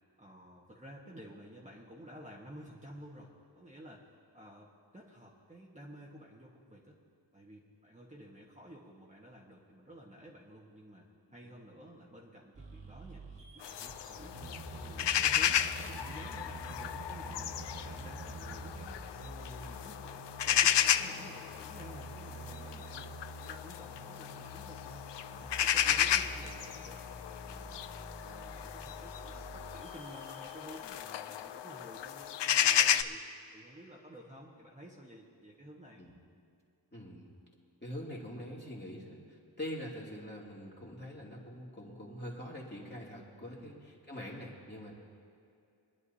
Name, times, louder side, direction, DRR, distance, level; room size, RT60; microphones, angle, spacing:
voice 1, 0.2-4.1 4.3-7.0 7.3-25.0 25.3-27.8 28.2-33.2 33.5-36.0 43.5-43.8, right 1 dB, 15° right, -5 dB, 1.5 m, -52 dB
sound 1, 12.5-31.1, right 1 dB, 75° right, 1.6 m, -48 dB
sound 2, 13.6-33.0, left 10 dB, 70° left, 0.5 m, -33 dB
voice 2, 25.7-26.1 36.0-36.1 36.9-37.3 37.8-44.9, equal, 25° left, -4 dB, 2.5 m, -44 dB
23.5 x 11.0 x 2.8 m, 2.6 s
wide cardioid pair, 90°, 44 cm